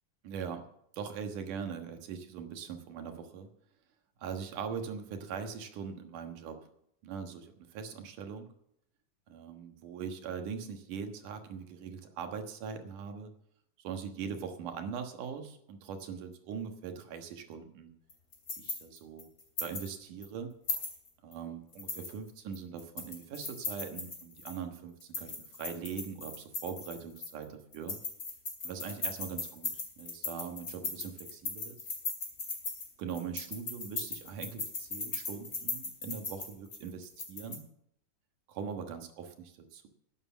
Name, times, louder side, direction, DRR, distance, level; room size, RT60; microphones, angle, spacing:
voice 1, 0.2-0.6 0.9-3.5 4.2-6.7 7.0-7.5 7.7-8.5 9.3-13.3 13.8-17.9 18.6-19.3 19.6-20.5 21.2-25.3 25.6-28.0 28.6-31.8 33.0-37.7 38.5-39.9, right 6 dB, 75° right, 5 dB, 3.0 m, -41 dB
sound 1, 18.1-19.9 20.2-20.3 20.7-21.3 21.7-24.6 25.0-27.4 27.7-37.6, left 3 dB, 30° left, 3.3 m, -38 dB
11.5 x 9.5 x 7.3 m, 0.72 s
omnidirectional pair, 3.7 m